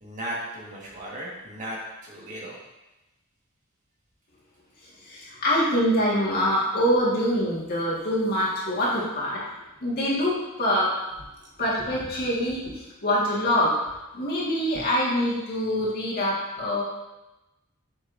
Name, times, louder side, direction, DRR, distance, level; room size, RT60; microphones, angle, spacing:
voice 1, 0.0-2.6, right 1 dB, 35° right, -4 dB, 1.7 m, -36 dB
voice 2, 5.0-9.4 9.8-11.0 11.6-12.7 13.0-13.8 14.1-16.8, equal, 45° left, -6 dB, 1.8 m, -24 dB
7.7 x 6.0 x 2.7 m, 1.0 s
head